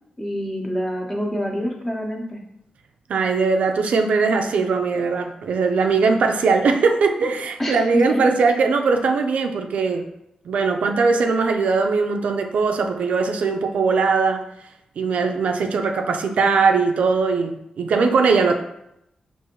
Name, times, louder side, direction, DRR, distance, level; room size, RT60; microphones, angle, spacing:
voice 1, 0.2-2.4 7.6-8.3, equal, 15° left, 0 dB, 0.8 m, -26 dB
voice 2, 3.1-10.0 10.5-14.4 15.0-18.5, right 4 dB, 75° right, 5 dB, 0.4 m, -20 dB
4.8 x 2.5 x 3.0 m, 0.81 s
cardioid pair, 80°, 2 cm